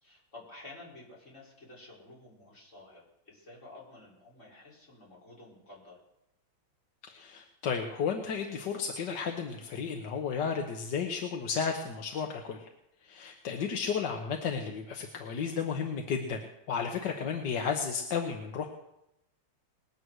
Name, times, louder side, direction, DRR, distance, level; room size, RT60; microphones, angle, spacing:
voice 1, 0.0-6.0, left 2 dB, 40° left, -5 dB, 4.6 m, -51 dB
voice 2, 7.1-12.7 13.0-16.4 16.7-18.7, left 6 dB, 70° left, 3 dB, 1.6 m, -33 dB
20.5 x 8.0 x 6.3 m, 0.84 s
omnidirectional pair, 2.1 m